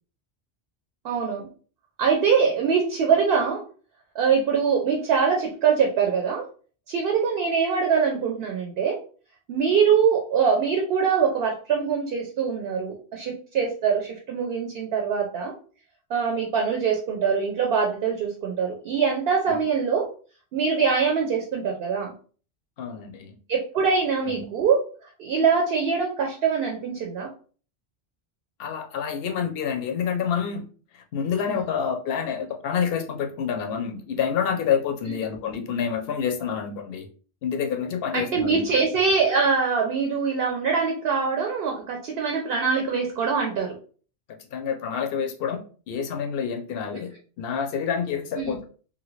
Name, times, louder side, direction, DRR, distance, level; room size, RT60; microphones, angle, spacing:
voice 1, 1.0-1.5 2.0-3.6 4.1-6.4 6.9-9.0 9.5-15.5 16.1-20.1 20.5-22.1 23.5-24.8 25.2-27.3 31.5-31.6 38.1-43.8 48.4-48.6, right 6 dB, 70° right, 1 dB, 0.8 m, -23 dB
voice 2, 22.8-23.4 24.3-24.5 28.6-30.7 31.1-37.1 37.4-38.6 44.5-45.6 45.9-48.7, left 7 dB, 70° left, 6 dB, 0.8 m, -28 dB
2.8 x 2.5 x 3.1 m, 0.40 s
omnidirectional pair, 1.1 m